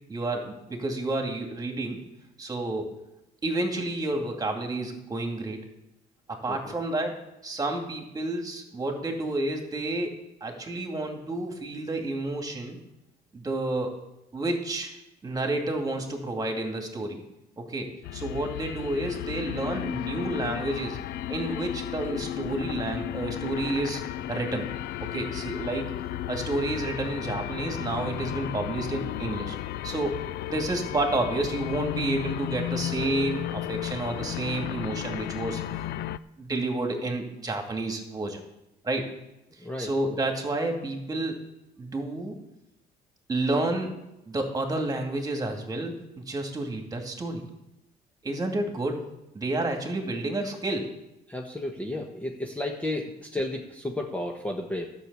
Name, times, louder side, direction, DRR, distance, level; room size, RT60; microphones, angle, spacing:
voice 1, 0.1-2.0 2.4-2.9 3.4-5.6 6.3-12.8 13.3-14.0 14.3-14.9 15.2-17.2 17.6-21.0 21.3-24.0 24.3-24.7 25.1-25.9 26.3-29.6 29.8-30.2 30.5-35.6 36.4-38.4 38.8-39.1 39.8-41.4 41.8-42.4 43.3-43.9 44.3-45.9 46.3-47.4 48.2-49.0 49.3-50.9, right 2 dB, 20° right, 3 dB, 2.5 m, -30 dB
sound 1, 18.0-36.2, left 12 dB, 70° left, 0.5 m, -34 dB
voice 2, 39.6-39.9 51.3-54.9, left 1 dB, 10° left, 1 dB, 1.3 m, -32 dB
11.5 x 6.5 x 8.1 m, 0.89 s
cardioid pair, 110°, 17 cm